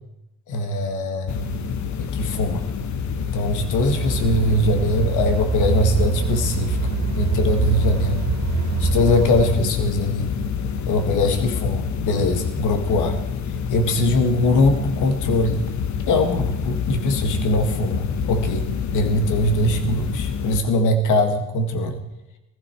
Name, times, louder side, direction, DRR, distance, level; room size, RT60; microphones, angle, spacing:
voice 1, 0.5-1.5 2.0-2.6 3.3-6.8 7.2-8.2 8.8-10.3 10.9-13.2 13.7-15.7 16.1-22.0, left 1 dB, 85° left, 7 dB, 1.9 m, -22 dB
sound 1, 1.3-20.6, left 6 dB, 70° left, 1.2 m, -27 dB
sound 2, 3.8-9.6, right 6 dB, 60° right, 2.2 m, -24 dB
17.0 x 15.0 x 4.6 m, 0.94 s
cardioid pair, 90°, 30 cm